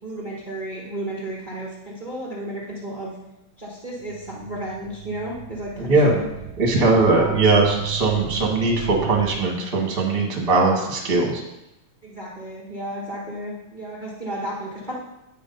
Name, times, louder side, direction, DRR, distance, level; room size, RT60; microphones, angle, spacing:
voice 1, 0.0-3.2 3.6-6.3 6.8-7.5 12.0-14.9, right 1 dB, 65° right, -5 dB, 0.4 m, -33 dB
sound 1, 4.0-9.4, right 14 dB, 90° right, 2.1 m, -34 dB
voice 2, 5.8-6.1 6.6-11.4, right 3 dB, 30° right, 0 dB, 1.0 m, -20 dB
9.2 x 5.0 x 5.4 m, 0.92 s
omnidirectional pair, 3.3 m